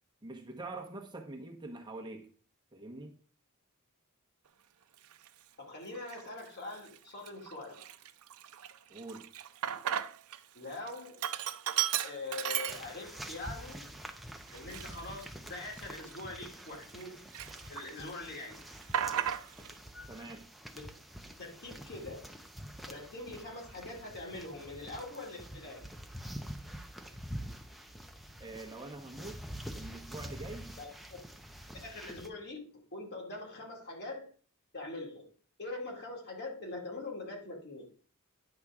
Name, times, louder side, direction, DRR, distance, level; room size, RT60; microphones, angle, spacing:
voice 1, 0.2-2.3 2.7-3.2 8.9-9.3 20.1-20.5 28.4-29.4 29.7-30.8, right 2 dB, 20° right, 1.0 m, -45 dB
Sink (filling or washing), 5.1-5.3 5.9-6.5 6.9-7.0 7.3-10.4 10.7-13.3 13.7-13.8 14.5-17.0 17.3-18.1 18.4-19.7, right 10 dB, 85° right, 0.5 m, -35 dB
voice 2, 5.6-7.8 10.5-11.2 12.0-13.9 14.5-17.2 17.7-19.0 19.9-20.3 20.7-21.0 21.2-22.3 22.9-25.9 30.8-31.2 31.7-34.3 34.7-35.3 35.6-37.9, left 2 dB, 50° left, 2.3 m, -43 dB
sound 1, 12.7-32.3, equal, ahead, 0.7 m, -47 dB
9.8 x 6.3 x 3.6 m
head